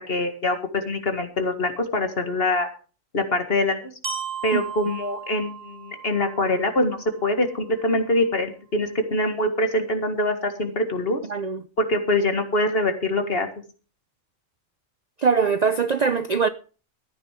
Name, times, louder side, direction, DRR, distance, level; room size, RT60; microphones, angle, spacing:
voice 1, 0.1-2.7 3.1-3.9 4.4-11.2 11.8-13.5, left 1 dB, 45° left, 2.0 m, -24 dB
Glockenspiel, 4.0-8.0, right 7 dB, 65° right, 2.0 m, -37 dB
voice 2, 11.3-11.7 15.2-16.5, right 5 dB, 45° right, 0.5 m, -22 dB
14.0 x 9.6 x 5.0 m
omnidirectional pair, 1.4 m